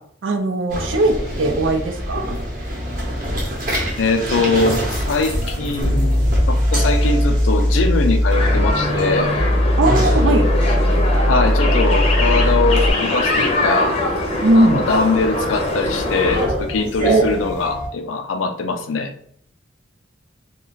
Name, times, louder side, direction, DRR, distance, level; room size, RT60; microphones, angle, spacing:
voice 1, 0.2-2.4 9.8-10.5 14.4-14.9 17.0-17.3, right 1 dB, 80° right, 5 dB, 0.5 m, -18 dB
sound 1, 0.7-17.9, right 1 dB, 45° right, 0.8 m, -28 dB
voice 2, 4.0-9.3 11.2-14.0 14.5-19.1, left 3 dB, 85° left, 6 dB, 0.4 m, -21 dB
sound 2, 5.8-12.9, equal, 5° right, 0.6 m, -18 dB
sound 3, 8.3-16.4, left 2 dB, 35° left, 0.6 m, -22 dB
2.4 x 2.2 x 3.8 m, 0.64 s
head